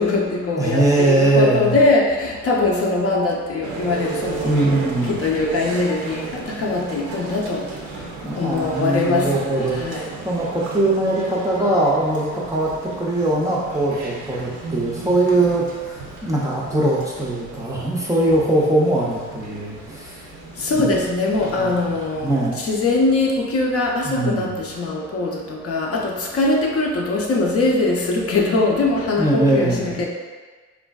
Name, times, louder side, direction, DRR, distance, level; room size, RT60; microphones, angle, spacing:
voice 1, 0.0-4.6 5.1-6.2 6.6-7.6 8.4-9.3 9.8-10.0 20.6-22.3 22.7-24.5 24.8-25.3 25.6-30.1, left 3 dB, 50° left, -2 dB, 0.6 m, -21 dB
voice 2, 0.6-1.8 4.4-5.2 8.2-9.8 10.2-20.2 20.7-20.8 21.6-21.9 22.2-22.6 24.0-24.6 29.2-30.0, right 2 dB, 10° right, -5 dB, 0.5 m, -21 dB
Male speech man speaking, 3.6-22.5, right 4 dB, 70° right, 0.5 m, -35 dB
3.2 x 2.5 x 2.2 m, 1.4 s
cardioid pair, 90°, 30 cm